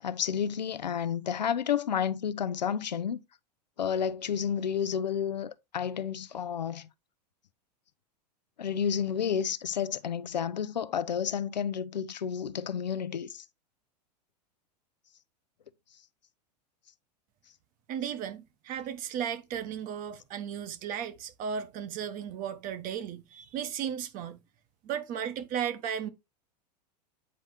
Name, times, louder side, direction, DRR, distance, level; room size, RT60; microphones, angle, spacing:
voice 1, 0.0-3.2 3.8-6.9 8.6-13.4, left 8 dB, 85° left, 0.6 m, -31 dB
voice 2, 17.9-24.4 24.8-26.1, right 8 dB, 40° right, 1.0 m, -35 dB
8.6 x 4.2 x 3.2 m
hypercardioid pair, 95°, 21 cm